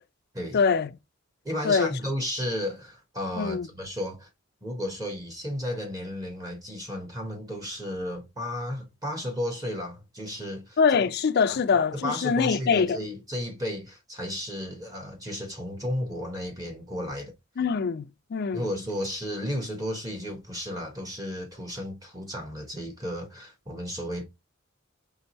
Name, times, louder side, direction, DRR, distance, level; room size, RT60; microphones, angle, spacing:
voice 1, 0.5-0.9 1.6-1.9 3.4-3.7 10.8-13.0 17.6-18.6, left 5 dB, 50° left, 0.4 m, -23 dB
voice 2, 1.4-4.3 4.6-10.8 11.5-11.6 11.9-17.3 18.5-24.2, equal, 20° right, 1.1 m, -33 dB
4.6 x 3.4 x 2.9 m
head